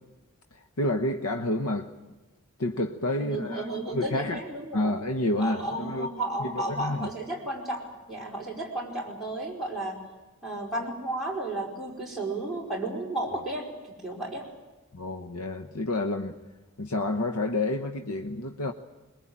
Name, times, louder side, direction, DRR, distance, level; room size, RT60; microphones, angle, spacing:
voice 1, 0.5-1.9 2.6-4.4 4.7-6.1 6.4-7.1 14.9-16.4 16.8-18.7, left 1 dB, 85° left, 6 dB, 1.1 m, -29 dB
voice 2, 3.2-4.9 5.4-10.0 10.4-13.7 14.0-14.5, right 1 dB, ahead, -5 dB, 4.9 m, -33 dB
22.5 x 21.5 x 8.8 m, 1.1 s
head